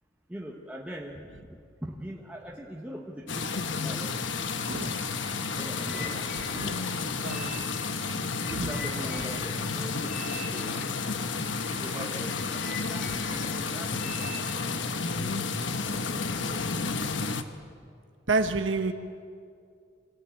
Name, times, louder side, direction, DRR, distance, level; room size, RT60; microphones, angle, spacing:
voice 1, 0.3-4.7 5.5-6.6 8.4-10.9 11.8-15.4 15.8-17.7, equal, 5° right, 1.3 m, -43 dB
sound 1, 3.3-17.4, left 4 dB, 75° left, 1.2 m, -31 dB
sound 2, 4.8-14.6, left 2 dB, 40° left, 3.6 m, -44 dB
voice 2, 6.5-6.9 7.2-7.6 8.6-8.7 18.3-18.9, right 3 dB, 80° right, 1.3 m, -28 dB
25.0 x 16.5 x 9.1 m
head